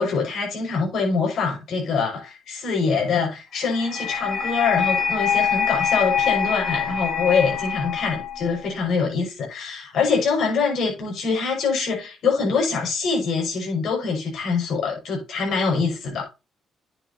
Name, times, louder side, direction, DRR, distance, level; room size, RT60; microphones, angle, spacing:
voice 1, 0.0-16.2, left 5 dB, 70° left, 5.7 m, -24 dB
sound 1, 3.6-8.7, left 7 dB, 10° left, 3.9 m, -24 dB
9.2 x 8.8 x 2.8 m
supercardioid pair, 75°, 0 cm